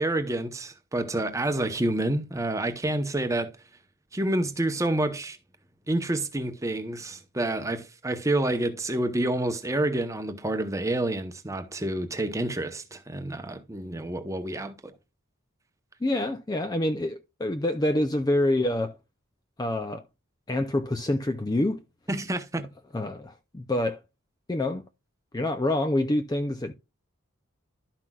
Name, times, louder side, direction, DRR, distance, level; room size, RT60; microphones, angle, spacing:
voice 1, 0.0-3.5 4.1-5.4 5.9-14.9 22.1-22.7, right 1 dB, 15° right, 0.8 m, -28 dB
voice 2, 16.0-19.0 19.6-20.0 20.5-21.8 22.9-24.0 24.5-24.8 25.3-26.7, left 1 dB, 20° left, 0.4 m, -26 dB
12.0 x 5.9 x 2.3 m
head